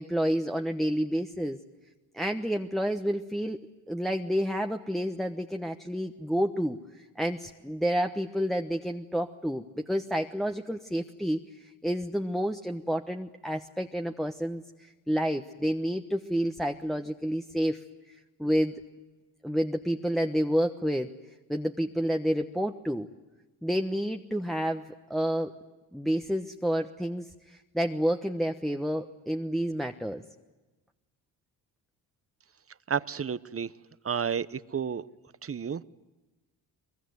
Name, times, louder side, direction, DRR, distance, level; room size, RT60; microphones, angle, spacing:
voice 1, 0.0-1.6 2.1-3.6 3.9-18.8 19.4-21.1 21.5-23.1 23.6-24.8 25.1-25.5 25.9-30.2, equal, ahead, 4 dB, 1.1 m, -29 dB
voice 2, 32.9-33.7 34.0-34.5 34.7-35.0 35.4-35.8, right 7 dB, 30° right, 17 dB, 0.8 m, -30 dB
22.5 x 22.0 x 9.5 m, 1.2 s
supercardioid pair, 60°, 49 cm